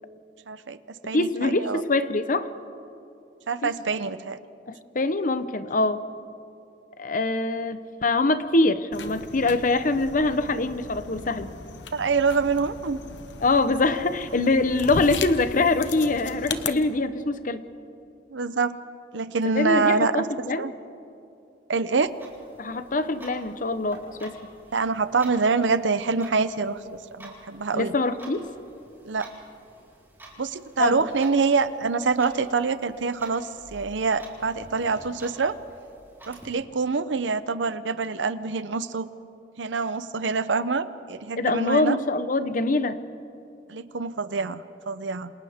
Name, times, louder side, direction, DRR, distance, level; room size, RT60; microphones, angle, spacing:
voice 1, 0.5-1.8 3.5-4.4 11.9-13.0 18.3-18.8 19.1-20.3 20.6-20.7 21.7-22.1 24.7-27.9 29.1-29.3 30.4-35.6 36.3-39.1 39.6-42.0 43.7-45.3, right 4 dB, 80° right, 13 dB, 0.7 m, -25 dB
voice 2, 1.1-2.5 3.6-3.7 4.7-6.0 7.0-11.5 13.4-17.6 19.5-20.7 22.6-24.3 27.7-28.5 30.8-31.0 41.4-43.0, left 2 dB, 45° left, 11 dB, 0.9 m, -24 dB
sound 1, 8.9-16.7, left 4 dB, 75° left, 1.1 m, -37 dB
Clock, 22.0-36.4, right 1 dB, 15° right, 4.3 m, -49 dB
28.5 x 27.5 x 3.6 m, 2.7 s
head